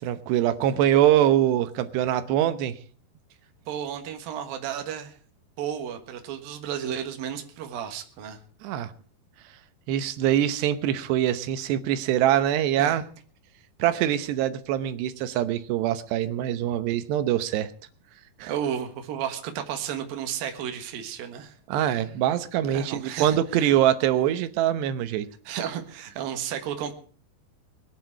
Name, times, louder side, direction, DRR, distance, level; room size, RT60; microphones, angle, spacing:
voice 1, 0.0-2.7 8.6-8.9 9.9-13.0 13.8-17.7 18.4-18.5 21.7-25.3, right 11 dB, 90° right, 12 dB, 3.2 m, -23 dB
voice 2, 3.7-5.1 5.6-8.4 12.8-13.0 18.5-21.5 22.7-23.7 25.5-26.9, right 9 dB, 65° right, 6 dB, 3.1 m, -33 dB
21.0 x 10.0 x 4.7 m, 0.42 s
omnidirectional pair, 4.7 m